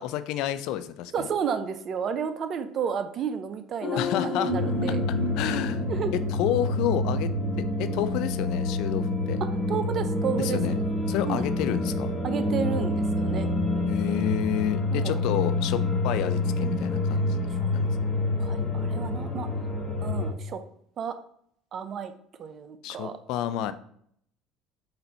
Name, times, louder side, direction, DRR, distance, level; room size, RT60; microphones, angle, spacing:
voice 1, 0.0-1.3 4.0-4.5 5.4-5.8 6.3-7.3 7.6-9.4 10.4-10.8 11.1-12.1 13.9-17.9 22.8-23.7, left 11 dB, 70° left, 12 dB, 0.3 m, -30 dB
voice 2, 1.1-5.0 5.9-6.1 9.4-10.8 11.2-11.4 12.2-13.5 14.9-15.2 17.5-17.8 18.4-19.5 20.0-20.6 21.0-21.2 21.7-22.1 22.4-23.2, right 7 dB, 50° right, 10 dB, 0.5 m, -32 dB
sound 1, 3.8-7.1 7.4-7.5, left 2 dB, 50° left, 1.1 m, -32 dB
sound 2, 4.5-20.3, left 2 dB, 20° left, 1.0 m, -27 dB
4.1 x 2.6 x 4.2 m, 0.65 s
hypercardioid pair, 80°, 0 cm